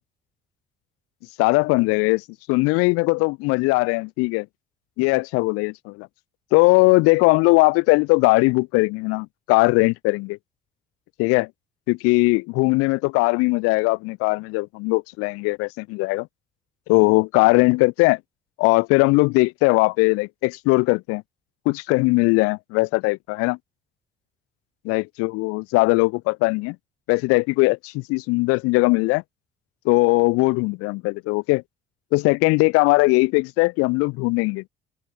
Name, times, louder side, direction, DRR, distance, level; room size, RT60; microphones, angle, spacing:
voice 1, 1.4-4.5 5.0-6.1 6.5-10.4 11.2-11.5 11.9-16.3 16.9-18.2 18.6-21.2 21.7-23.6 24.9-26.8 27.1-29.2 29.9-31.6 32.1-34.6, left 26 dB, 55° left, 0.4 m, -20 dB
open air
figure-of-eight pair, 50°, 29 cm